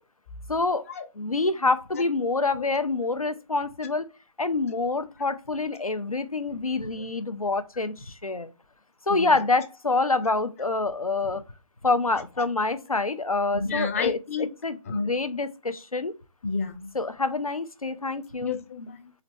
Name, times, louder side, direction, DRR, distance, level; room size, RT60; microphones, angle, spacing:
voice 1, 0.5-0.8 1.2-4.1 4.4-8.5 9.1-11.4 11.8-14.2 14.6-16.1 16.9-18.5, left 3 dB, 90° left, 0.6 m, -26 dB
voice 2, 13.5-14.5 14.8-15.1 16.4-16.9 18.4-19.1, left 4 dB, 25° left, 0.5 m, -31 dB
4.0 x 3.9 x 3.2 m
figure-of-eight pair, 140°, 18 cm